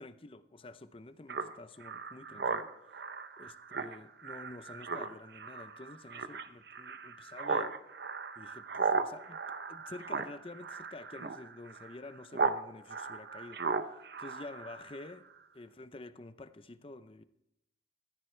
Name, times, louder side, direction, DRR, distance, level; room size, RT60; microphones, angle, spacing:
voice 1, 0.0-2.7 3.4-7.7 8.4-9.4 9.7-15.3 15.5-17.2, left 2 dB, 30° left, 0.6 m, -49 dB
Speech synthesizer, 1.3-12.6 12.9-15.1, right 4 dB, 60° right, 0.7 m, -36 dB
15.0 x 14.0 x 3.3 m
head